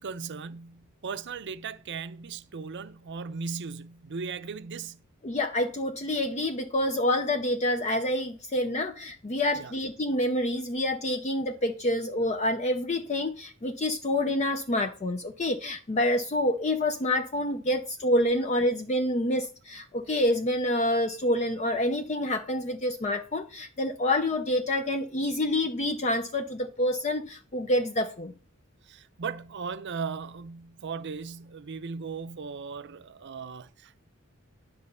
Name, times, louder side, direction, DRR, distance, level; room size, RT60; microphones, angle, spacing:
voice 1, 0.0-5.0 9.5-9.7 17.7-17.8 28.8-34.1, right 5 dB, 55° right, 0.6 m, -37 dB
voice 2, 5.2-28.3, left 1 dB, 35° left, 0.6 m, -27 dB
10.5 x 3.9 x 6.7 m
head